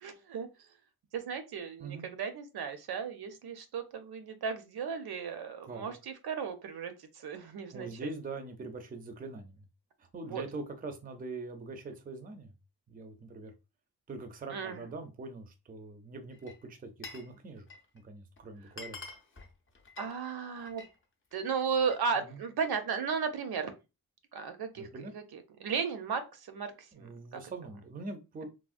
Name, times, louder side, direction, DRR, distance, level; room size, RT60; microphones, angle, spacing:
voice 1, 0.0-0.5 1.1-6.9 7.2-8.1 10.3-10.4 14.5-14.8 20.0-20.8 21.3-23.7 24.3-24.9 25.1-26.7 27.0-27.4, right 6 dB, 75° right, 8 dB, 0.6 m, -35 dB
voice 2, 7.7-9.6 10.0-12.5 12.9-13.5 14.1-17.7 18.0-19.0 22.2-22.4 24.8-25.1 26.9-28.5, right 3 dB, 25° right, 6 dB, 0.4 m, -43 dB
Glass, 16.3-17.3 17.6-18.0 18.4-18.5 18.7-20.9 21.3-22.1, left 3 dB, 35° left, 0.5 m, -48 dB
3.5 x 2.0 x 2.4 m, 0.27 s
wide cardioid pair, 165°, 38 cm